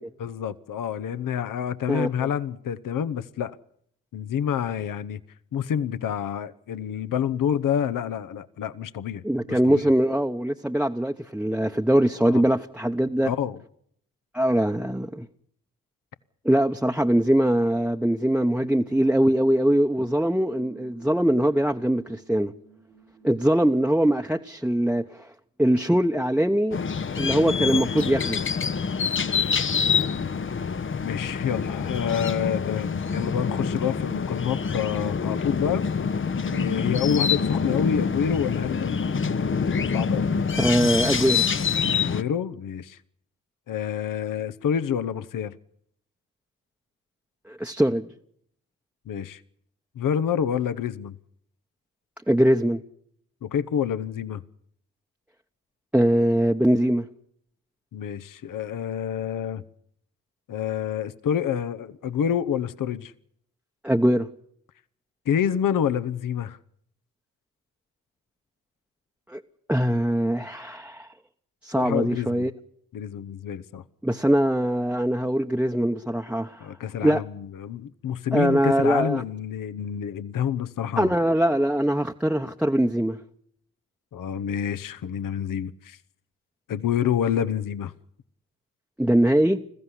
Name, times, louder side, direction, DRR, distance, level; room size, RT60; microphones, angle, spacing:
voice 1, 0.2-3.6 4.1-5.2 5.5-9.8 12.3-12.4 13.2-13.6 27.7-27.8 31.0-35.9 36.4-39.0 39.5-40.3 41.9-43.0 43.7-45.6 49.1-49.4 50.0-51.2 53.4-54.4 57.9-59.6 60.5-63.1 65.3-66.6 71.8-72.5 72.9-73.8 76.6-81.1 84.1-86.0 86.7-87.9, left 8 dB, 65° left, 1.0 m, -28 dB
voice 2, 9.2-13.3 14.3-15.3 16.4-22.5 23.2-25.3 25.6-26.8 27.2-28.4 40.5-41.4 47.5-48.1 52.3-52.8 55.9-57.1 63.8-64.3 69.3-69.4 69.7-71.1 71.6-72.5 74.0-76.7 77.0-77.2 78.3-79.2 81.0-83.2 89.0-89.6, right 1 dB, 5° right, 1.0 m, -22 dB
sound 1, 20.5-23.7, right 6 dB, 90° right, 4.8 m, -53 dB
sound 2, 26.7-42.2, left 6 dB, 35° left, 0.9 m, -26 dB
21.0 x 15.0 x 9.8 m
hypercardioid pair, 45°, 35 cm